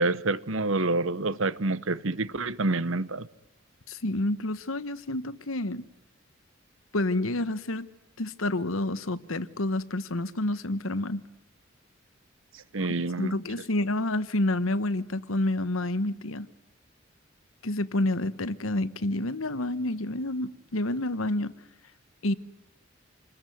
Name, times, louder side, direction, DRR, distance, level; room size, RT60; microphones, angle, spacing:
voice 1, 0.0-3.3 12.5-13.3, right 2 dB, 75° right, 1.1 m, -27 dB
voice 2, 3.9-5.8 6.9-7.9 8.2-11.2 12.8-16.5 17.6-21.5 22.2-22.3, left 1 dB, 85° left, 1.3 m, -29 dB
27.5 x 20.5 x 9.4 m
head